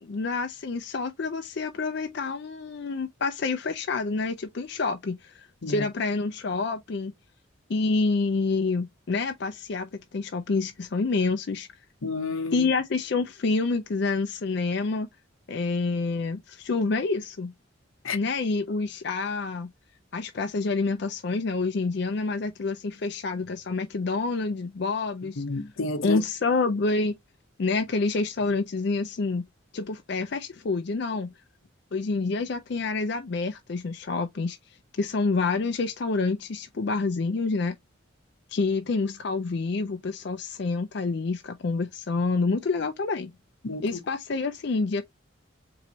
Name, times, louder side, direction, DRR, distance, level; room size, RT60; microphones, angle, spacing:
voice 1, 0.0-7.1 7.7-11.7 12.5-15.1 15.5-17.5 18.1-19.7 20.1-25.4 26.0-27.2 27.6-29.5 29.7-31.3 31.9-34.6 35.0-37.8 38.5-43.3 43.8-45.0, left 3 dB, 55° left, 0.4 m, -28 dB
voice 2, 12.0-12.7 18.0-18.2 25.4-26.2 43.6-44.0, left 3 dB, 80° left, 0.8 m, -30 dB
4.5 x 3.0 x 2.8 m
head